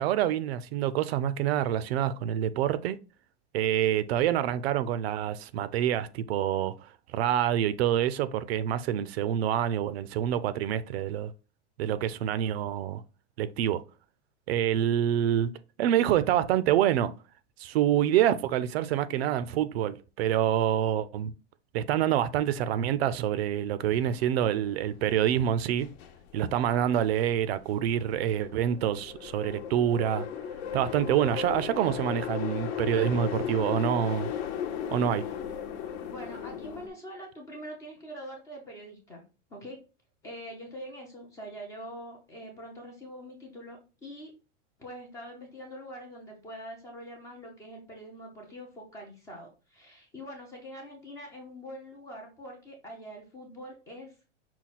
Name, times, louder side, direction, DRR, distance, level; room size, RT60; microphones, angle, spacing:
voice 1, 0.0-3.0 3.5-11.3 11.8-13.0 13.4-13.8 14.5-15.5 15.8-17.1 17.6-21.3 21.7-25.9 26.3-30.3 30.7-34.3 34.9-35.2, right 10 dB, 60° right, 0.5 m, -27 dB
sound 1, 23.9-36.9, left 9 dB, 65° left, 1.0 m, -36 dB
voice 2, 36.0-39.2 39.5-39.8 40.2-44.3 44.8-54.1, equal, 10° left, 0.4 m, -44 dB
5.7 x 2.3 x 4.0 m
supercardioid pair, 165°, 35 cm